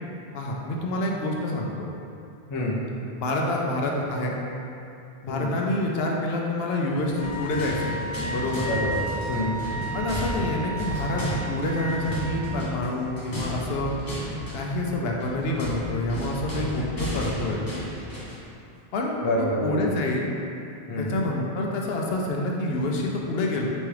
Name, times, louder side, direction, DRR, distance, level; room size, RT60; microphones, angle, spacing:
voice 1, 0.3-1.9 3.2-4.3 5.2-7.9 8.3-8.7 9.9-13.9 14.5-17.6 18.9-20.3 21.0-23.7, left 2 dB, 70° left, -1 dB, 0.8 m, -27 dB
voice 2, 2.5-2.8 5.3-5.5 8.7-9.6 19.2-19.9 20.9-21.2, left 1 dB, 40° left, -3 dB, 0.4 m, -27 dB
sound 1, 7.0-18.5, equal, 20° left, 0.9 m, -33 dB
Wind instrument woodwind instrument, 7.1-12.1, right 1 dB, 60° right, 0.9 m, -34 dB
4.1 x 3.5 x 3.2 m, 2.6 s
omnidirectional pair, 1.1 m